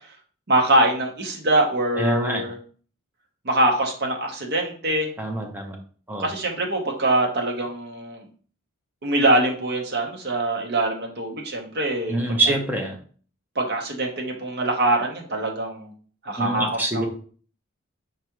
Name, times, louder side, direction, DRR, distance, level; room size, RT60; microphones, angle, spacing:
voice 1, 0.5-2.5 3.4-5.1 6.2-8.2 9.0-12.6 13.5-15.9 16.2-17.1, right 1 dB, 50° right, 1 dB, 1.0 m, -23 dB
voice 2, 2.0-2.4 5.2-5.8 6.1-6.3 12.1-13.0 16.4-17.1, right 2 dB, 10° right, 1 dB, 0.8 m, -25 dB
5.1 x 3.5 x 3.0 m, 0.43 s
head